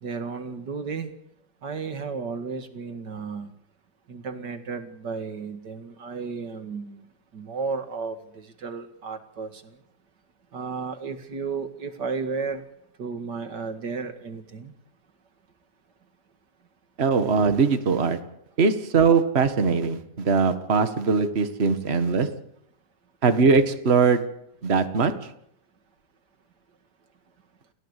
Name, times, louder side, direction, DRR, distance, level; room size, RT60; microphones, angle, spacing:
voice 1, 0.0-1.1 1.6-3.5 4.1-7.0 7.3-9.8 10.5-12.6 13.0-14.7 22.1-22.4, right 5 dB, 90° right, 2.6 m, -33 dB
voice 2, 17.0-18.2 18.6-22.4 23.2-24.4 24.6-25.3, right 5 dB, 40° right, 1.8 m, -21 dB
30.0 x 15.5 x 8.3 m
omnidirectional pair, 1.8 m